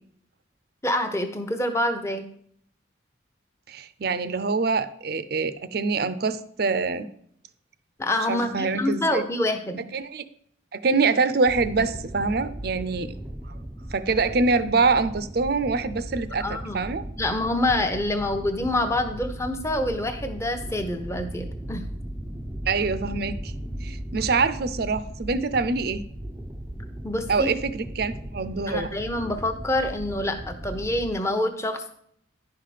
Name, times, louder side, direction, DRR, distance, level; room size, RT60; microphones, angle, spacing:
voice 1, 0.8-2.2 8.0-9.9 16.4-16.8 17.2-21.8 27.0-27.5 28.7-31.9, left 1 dB, 15° left, 6 dB, 0.9 m, -26 dB
voice 2, 3.7-7.1 8.3-9.2 9.9-10.2 10.7-13.1 13.5-13.6 13.9-17.0 22.7-23.5 23.8-26.0 27.3-29.0, right 4 dB, 50° right, 14 dB, 0.6 m, -25 dB
sound 1, 11.5-31.1, right 1 dB, 5° right, 0.6 m, -37 dB
10.5 x 5.7 x 5.0 m, 0.66 s
head